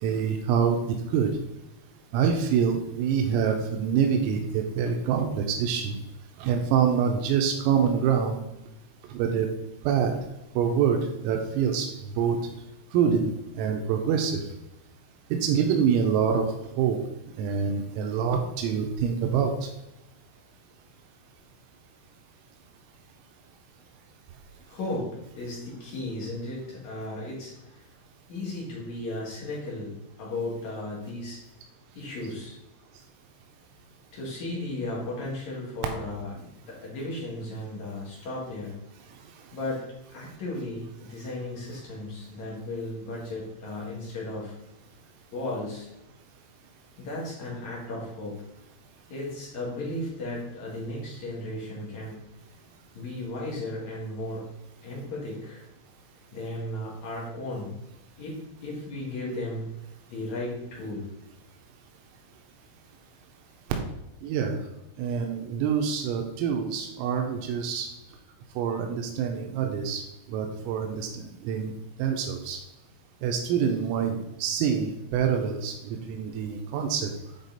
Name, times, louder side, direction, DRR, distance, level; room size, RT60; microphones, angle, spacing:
voice 1, 0.0-1.3 2.1-6.0 6.4-8.4 9.1-9.5 9.9-10.2 10.6-11.9 12.2-12.4 12.9-14.4 15.3-16.5 16.8-17.0 17.4-19.6 64.2-64.6 65.0-67.9 68.6-70.0 70.3-71.7 72.0-72.6 73.2-77.1, right 7 dB, 85° right, 4 dB, 3.4 m, -26 dB
voice 2, 24.7-25.1 25.4-27.8 28.3-29.9 30.2-31.4 31.9-32.6 34.1-38.7 39.5-39.8 40.1-44.5 45.3-45.9 47.0-48.4 49.1-52.2 52.9-54.4 54.8-55.6 56.3-57.7 58.2-59.6 60.1-61.1, left 2 dB, 55° left, -5 dB, 2.3 m, -35 dB
9.7 x 4.1 x 4.0 m, 0.91 s
omnidirectional pair, 6.0 m